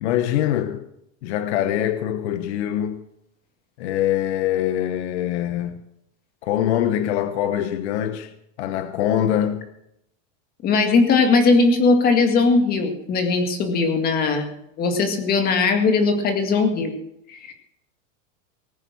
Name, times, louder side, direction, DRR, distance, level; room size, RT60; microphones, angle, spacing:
voice 1, 0.0-0.8 1.2-3.0 3.8-5.8 6.4-8.3 8.6-9.6, left 11 dB, 55° left, 1.1 m, -23 dB
voice 2, 10.6-14.5 14.8-16.9 17.3-17.5, left 4 dB, 25° left, 2.0 m, -19 dB
19.0 x 9.8 x 6.1 m
supercardioid pair, 170°, 39 cm